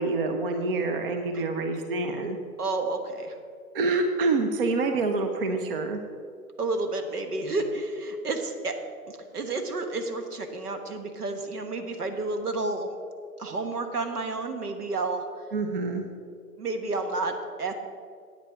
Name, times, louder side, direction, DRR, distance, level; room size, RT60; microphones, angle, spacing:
voice 1, 0.0-2.4 3.7-6.0 15.5-16.0, right 3 dB, 35° right, 5 dB, 0.7 m, -27 dB
voice 2, 2.6-3.3 6.6-8.7 9.1-12.9 13.4-15.2 16.6-17.7, right 3 dB, 70° right, 6 dB, 1.4 m, -30 dB
8.9 x 8.6 x 5.0 m, 2.2 s
figure-of-eight pair, 125°, 47 cm